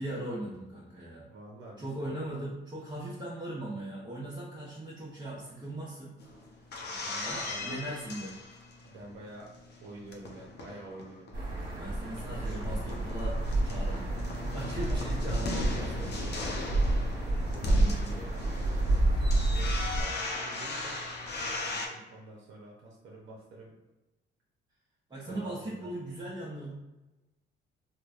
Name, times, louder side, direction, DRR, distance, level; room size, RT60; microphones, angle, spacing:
voice 1, 0.0-1.3 1.8-6.2 7.2-8.4 11.7-16.0 16.4-16.5 17.6-18.2 25.1-26.7, right 1 dB, 20° right, -8 dB, 0.8 m, -39 dB
voice 2, 1.3-2.4 6.2-6.5 6.7-7.8 8.8-9.5 9.8-11.3 12.3-12.8 14.8-15.1 15.5-17.1 17.5-18.4 19.1-23.7 25.2-25.9, right 2 dB, 75° right, -3 dB, 0.6 m, -48 dB
sound 1, 6.2-9.1 9.5-11.5 11.8-11.9 12.1-21.9, left 3 dB, 55° left, 0.6 m, -38 dB
sound 2, 11.3-20.0, right 2 dB, 45° right, 1.3 m, -29 dB
3.1 x 2.1 x 2.4 m, 1.0 s
cardioid pair, 90°, 20 cm